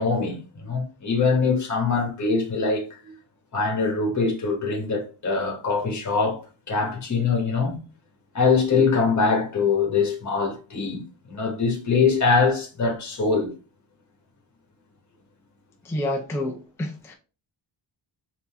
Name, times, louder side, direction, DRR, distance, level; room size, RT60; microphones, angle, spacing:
voice 1, 0.0-2.8 3.5-6.4 6.7-7.8 8.3-11.0 11.3-13.5, left 4 dB, 40° left, 1.3 m, -23 dB
voice 2, 15.8-17.1, left 1 dB, 5° left, 0.5 m, -29 dB
3.8 x 2.8 x 3.5 m
wide cardioid pair, 140°, 46 cm